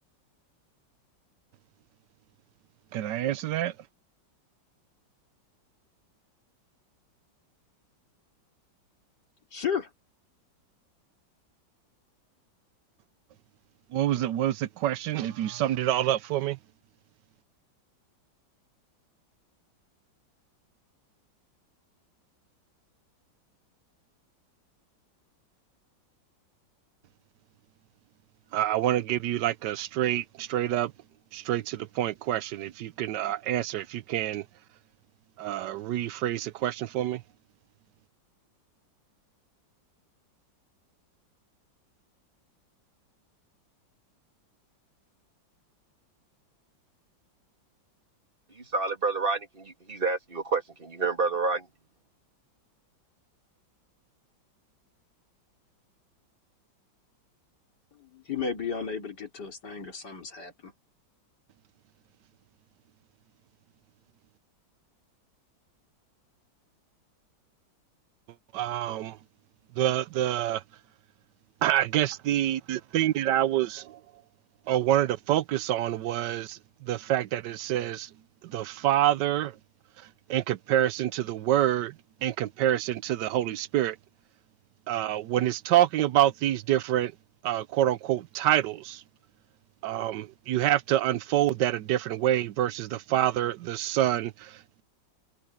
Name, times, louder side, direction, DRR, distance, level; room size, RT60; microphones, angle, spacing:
voice 1, 2.9-3.7 13.9-16.6 28.5-30.9 31.3-34.4 35.4-37.2 68.5-69.2 69.8-70.6 71.6-74.0 74.7-78.1 78.4-79.5 80.3-81.9 82.2-84.0 84.9-87.1 87.4-89.0 89.8-94.8, right 12 dB, 70° right, 1.2 m, -27 dB
voice 2, 9.5-9.9 57.9-60.7, left 6 dB, 60° left, 4.0 m, -34 dB
voice 3, 48.6-51.7, right 4 dB, 30° right, 2.7 m, -29 dB
omnidirectional pair, 2.1 m